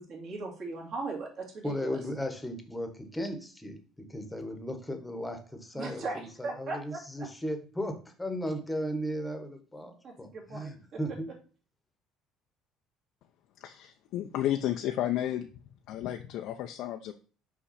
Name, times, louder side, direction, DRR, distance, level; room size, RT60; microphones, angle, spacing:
voice 1, 0.0-2.0 5.7-7.3 10.0-11.0, right 3 dB, 50° right, 0 dB, 2.4 m, -38 dB
voice 2, 1.6-11.3, equal, 5° left, 6 dB, 1.2 m, -36 dB
voice 3, 13.6-15.5 15.9-17.1, left 12 dB, 65° left, 5 dB, 0.5 m, -32 dB
5.9 x 4.9 x 4.2 m, 0.38 s
cardioid pair, 130°, 0 cm